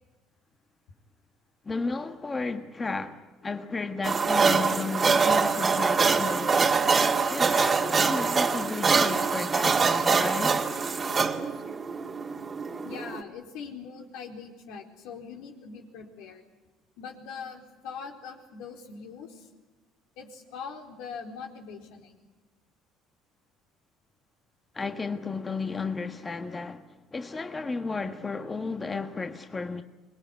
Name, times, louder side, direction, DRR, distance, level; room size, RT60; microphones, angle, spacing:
voice 1, 1.6-6.8 7.3-10.6 24.7-29.8, left 4 dB, 20° left, 1.4 m, -33 dB
sound 1, 4.0-13.2, right 5 dB, 30° right, 2.1 m, -24 dB
voice 2, 12.8-16.5 17.0-19.5 20.2-22.2, left 6 dB, 80° left, 4.2 m, -42 dB
25.5 x 20.5 x 9.6 m
supercardioid pair, 100°, 0 cm